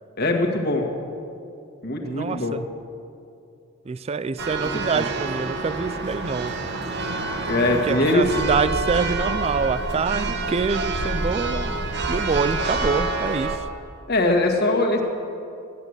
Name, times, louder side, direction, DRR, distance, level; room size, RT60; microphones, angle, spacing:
voice 1, 0.2-0.9 1.8-2.6 4.6-5.1 7.5-8.3 14.1-15.0, left 2 dB, 45° left, 2 dB, 1.7 m, -22 dB
voice 2, 2.0-2.6 3.9-6.5 7.9-11.7 12.1-13.6, right 5 dB, 30° right, 14 dB, 0.3 m, -26 dB
Church bell, 4.4-13.6, right 2 dB, 50° right, 1.1 m, -27 dB
14.0 x 10.5 x 8.0 m, 2.6 s
head